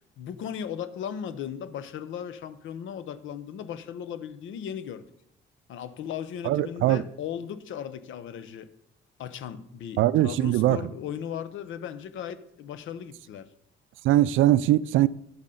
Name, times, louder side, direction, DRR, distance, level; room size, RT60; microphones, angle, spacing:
voice 1, 0.0-5.1 5.7-8.7 9.2-13.5, left 8 dB, 80° left, 0.8 m, -37 dB
voice 2, 6.4-7.0 10.0-10.8 14.0-15.1, right 14 dB, 80° right, 0.4 m, -21 dB
10.5 x 7.5 x 3.8 m
cardioid pair, 90°, 20 cm